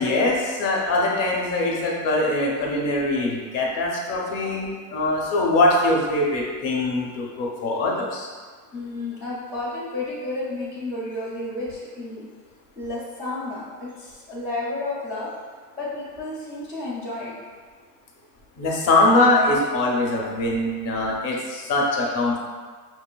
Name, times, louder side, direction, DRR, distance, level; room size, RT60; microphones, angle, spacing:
voice 1, 0.0-8.3 18.6-22.4, left 2 dB, 35° left, -2 dB, 0.6 m, -22 dB
voice 2, 8.7-12.2 12.8-15.3 15.7-17.3, left 2 dB, 5° right, -11 dB, 0.3 m, -31 dB
5.8 x 2.5 x 2.2 m, 1.5 s
supercardioid pair, 150°, 47 cm